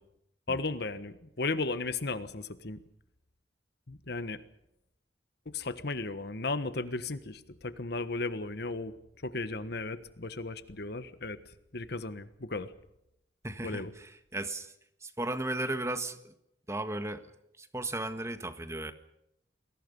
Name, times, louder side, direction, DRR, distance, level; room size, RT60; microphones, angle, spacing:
voice 1, 0.5-2.8 3.9-4.4 5.5-8.9 9.2-11.4 11.7-12.7 13.6-13.9, left 3 dB, 65° left, 12 dB, 1.5 m, -35 dB
voice 2, 13.4-14.7 15.0-16.3 16.7-17.2 17.6-18.9, right 2 dB, 15° right, 9 dB, 1.6 m, -35 dB
29.5 x 22.0 x 5.5 m, 0.81 s
head